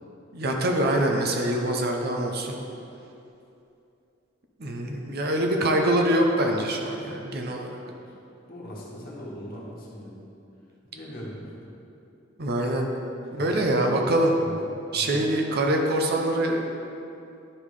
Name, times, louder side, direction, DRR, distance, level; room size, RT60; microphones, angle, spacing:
voice 1, 0.3-2.6 4.6-7.8 12.4-12.9 13.3-14.3 14.9-16.6, right 1 dB, 50° right, 2 dB, 0.8 m, -24 dB
voice 2, 8.5-10.2 10.9-11.6 13.3-13.5 14.4-14.5 14.9-15.3, equal, 45° left, -4 dB, 1.6 m, -40 dB
11.0 x 3.7 x 4.9 m, 2.7 s
head